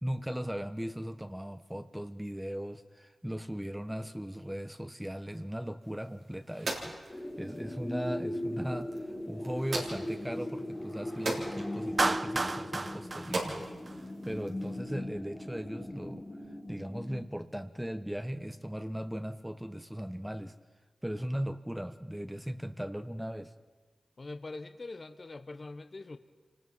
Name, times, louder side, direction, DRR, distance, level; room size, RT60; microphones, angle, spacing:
voice 1, 0.0-13.7 14.2-16.2 16.7-20.5 21.0-23.5, equal, 5° right, 9 dB, 1.0 m, -38 dB
sound 1, 5.8-14.8, right 2 dB, 80° right, 3.6 m, -41 dB
sound 2, 7.1-17.3, left 1 dB, 20° left, 2.9 m, -39 dB
Clapping, 12.0-14.3, right 2 dB, 45° right, 0.8 m, -32 dB
voice 2, 24.2-26.2, left 3 dB, 50° left, 9 dB, 1.0 m, -43 dB
27.0 x 19.0 x 5.6 m, 1.4 s
cardioid pair, 45°, 0 cm